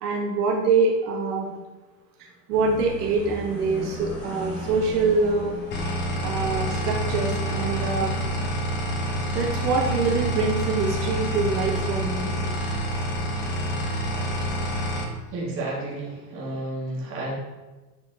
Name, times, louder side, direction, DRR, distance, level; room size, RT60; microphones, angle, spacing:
voice 1, 0.0-1.5 2.5-5.6 6.2-8.1 9.3-12.3, right 4 dB, 75° right, -1 dB, 1.5 m, -24 dB
sound 1, 2.5-7.7, left 1 dB, 5° left, 0.3 m, -37 dB
sound 2, 5.7-15.1, equal, 25° left, 0.9 m, -27 dB
voice 2, 15.3-17.4, right 2 dB, 25° right, -4 dB, 2.1 m, -31 dB
9.5 x 4.1 x 3.6 m, 1.2 s
supercardioid pair, 155°, 46 cm